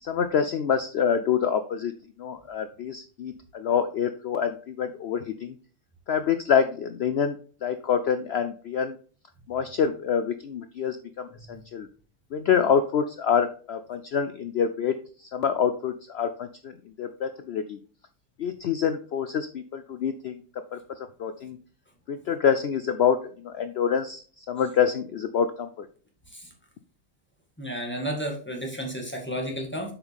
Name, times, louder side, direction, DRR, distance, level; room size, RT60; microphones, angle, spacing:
voice 1, 0.0-1.9 2.2-5.6 6.1-9.0 9.5-11.9 12.3-17.8 18.4-20.4 20.7-21.6 22.1-25.9, left 7 dB, 70° left, 9 dB, 0.6 m, -26 dB
voice 2, 27.6-29.9, equal, 5° left, 0 dB, 1.7 m, -32 dB
7.1 x 5.3 x 3.5 m, 0.41 s
omnidirectional pair, 1.6 m